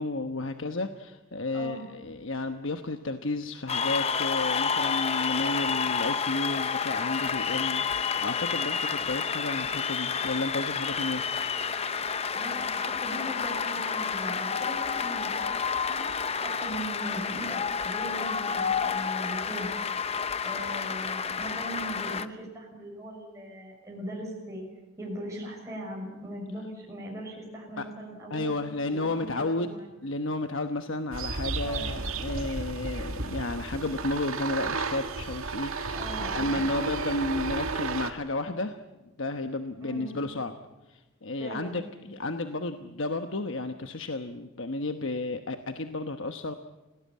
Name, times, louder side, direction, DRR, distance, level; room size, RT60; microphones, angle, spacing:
voice 1, 0.0-11.2 27.8-27.9 28.3-29.8 30.0-36.0 36.3-38.8 39.2-40.5 40.9-46.5, left 2 dB, 65° left, 7 dB, 1.1 m, -32 dB
voice 2, 1.5-1.9 12.3-16.0 16.4-19.7 20.4-24.6 25.0-28.6 28.9-29.9 31.6-32.0 35.9-36.6 39.8-40.2 41.4-41.8, right 1 dB, 15° right, -3 dB, 6.1 m, -39 dB
Cheering / Applause, 3.7-22.2, left 6 dB, 30° left, 0.8 m, -30 dB
sound 1, 31.1-38.1, right 3 dB, 80° right, 2.1 m, -33 dB
28.5 x 18.0 x 8.5 m, 1.1 s
head